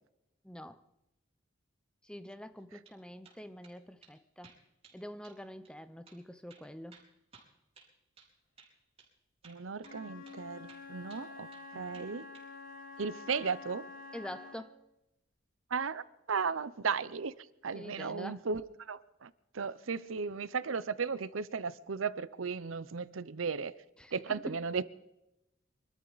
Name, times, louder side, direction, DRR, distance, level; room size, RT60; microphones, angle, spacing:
voice 1, 0.4-0.8 2.0-4.6 4.9-7.0 11.7-12.1 14.1-14.7 17.7-18.5 24.0-24.6, equal, 5° left, 0.6 m, -46 dB
sound 1, 2.6-3.0 3.2-3.8 4.0-4.1 4.4-5.0 5.2-5.4 5.6-5.7 6.1-6.2 6.5-8.3 8.6-8.7 9.0-9.1 9.4-10.0 10.2-10.4 10.7-11.7 11.9-12.5, right 5 dB, 30° right, 4.3 m, -59 dB
voice 2, 9.4-11.5 11.7-12.3 13.0-13.8 15.7-16.0 16.3-17.3 17.6-18.6 18.9-19.3 19.5-23.7 24.1-24.8, right 5 dB, 90° right, 0.7 m, -35 dB
Wind instrument woodwind instrument, 9.8-14.8, left 4 dB, 45° left, 2.7 m, -48 dB
24.5 x 13.0 x 4.1 m
head